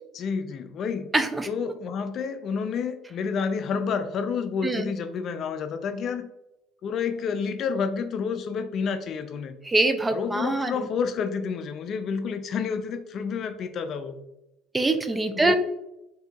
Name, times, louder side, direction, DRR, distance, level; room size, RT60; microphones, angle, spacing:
voice 1, 0.1-1.1 1.5-6.3 6.8-9.6 10.1-14.2 15.3-15.6, left 6 dB, 50° left, 9 dB, 0.4 m, -29 dB
voice 2, 1.1-1.5 4.6-4.9 9.6-10.9 14.7-15.6, right 2 dB, 15° right, 8 dB, 0.4 m, -24 dB
4.4 x 2.7 x 2.3 m, 0.89 s
supercardioid pair, 95°, 0 cm